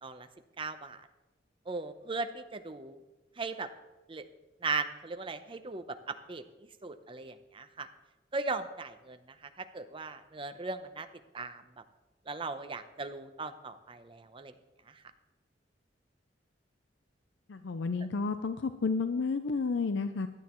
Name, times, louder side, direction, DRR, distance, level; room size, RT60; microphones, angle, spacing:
voice 1, 0.6-1.0 1.7-3.0 3.4-3.7 4.1-4.2 4.6-6.4 6.8-7.9 8.3-9.2 9.7-11.1 11.3-11.6 12.3-14.5, right 3 dB, 30° right, 8 dB, 0.7 m, -37 dB
voice 2, 17.5-20.3, left 4 dB, 80° left, 10 dB, 0.5 m, -31 dB
16.5 x 11.5 x 3.1 m, 1.0 s
head